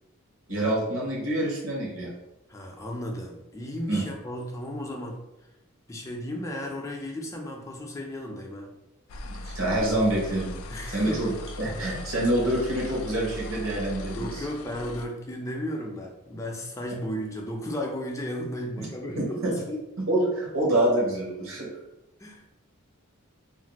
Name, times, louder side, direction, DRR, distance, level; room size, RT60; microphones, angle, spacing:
voice 1, 0.5-2.1 3.9-4.0 9.3-10.5 10.9-11.3 11.6-14.5 18.8-18.9 19.2-19.5 20.1-21.7, right 1 dB, 70° right, -3 dB, 1.0 m, -26 dB
voice 2, 2.5-5.2 5.9-8.7 10.7-11.2 11.8-11.9 14.1-19.8 22.2-22.5, equal, 15° left, 0 dB, 0.4 m, -34 dB
sound 1, 9.1-15.1, left 1 dB, 80° left, 0.4 m, -39 dB
2.5 x 2.1 x 4.0 m, 0.93 s
head